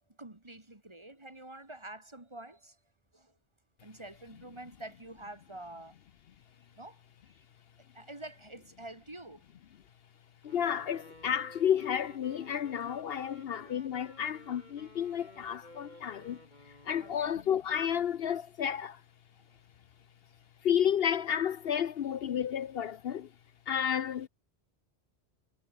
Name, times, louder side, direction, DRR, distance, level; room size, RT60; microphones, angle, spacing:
voice 1, 0.2-2.8 3.1-3.4 3.8-6.0 6.7-7.0 7.9-9.5 15.9-16.0 17.0-17.3 19.4-19.6, right 1 dB, 25° right, 2.1 m, -47 dB
voice 2, 10.4-19.0 20.6-23.3 23.7-24.3, left 9 dB, 65° left, 0.9 m, -31 dB
Wind instrument woodwind instrument, 10.4-17.6, left 1 dB, 40° left, 7.0 m, -55 dB
omnidirectional pair, 1.1 m